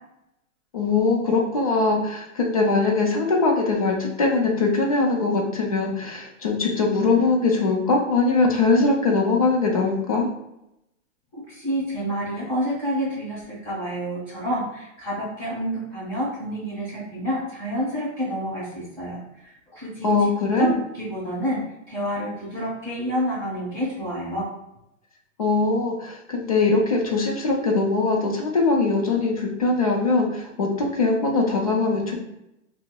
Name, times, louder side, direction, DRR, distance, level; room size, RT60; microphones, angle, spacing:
voice 1, 0.7-10.3 20.0-20.7 25.4-32.1, left 3 dB, 30° left, 0 dB, 0.4 m, -21 dB
voice 2, 11.3-20.2 20.6-24.5, equal, 15° left, -8 dB, 1.0 m, -28 dB
5.6 x 2.0 x 2.2 m, 0.85 s
hypercardioid pair, 170°, 40 cm